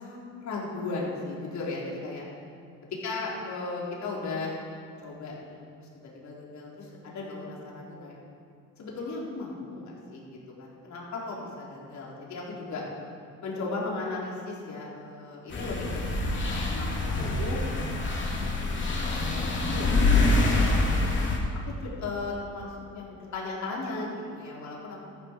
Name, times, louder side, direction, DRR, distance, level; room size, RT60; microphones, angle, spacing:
voice 1, 0.0-2.2 3.0-4.6 4.9-8.2 8.8-12.8 13.4-17.6 18.3-21.1 21.8-25.1, left 3 dB, 65° left, -4 dB, 4.0 m, -37 dB
sound 1, 15.5-21.4, left 2 dB, 40° left, 2.7 m, -26 dB
14.0 x 12.5 x 4.7 m, 2.4 s
cardioid pair, 90°, 30 cm